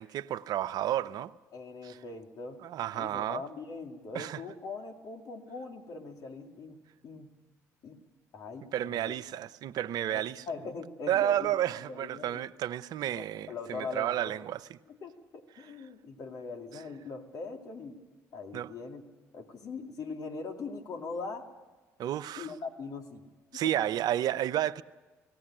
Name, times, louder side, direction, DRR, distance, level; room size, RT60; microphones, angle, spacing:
voice 1, 0.0-1.3 1.8-2.0 2.6-3.4 4.1-4.4 8.7-10.5 11.1-14.8 15.6-15.7 16.7-16.8 18.5-18.7 22.0-22.5 23.5-24.8, right 12 dB, 65° right, 0.7 m, -31 dB
voice 2, 1.5-2.6 2.9-7.3 7.8-8.0 8.3-9.1 10.1-11.5 11.8-12.4 13.0-14.4 14.9-18.0 18.3-19.0 19.3-21.5 22.4-23.3 23.5-23.9, left 4 dB, 60° left, 2.5 m, -41 dB
18.5 x 16.5 x 8.8 m
supercardioid pair, 65°, 7 cm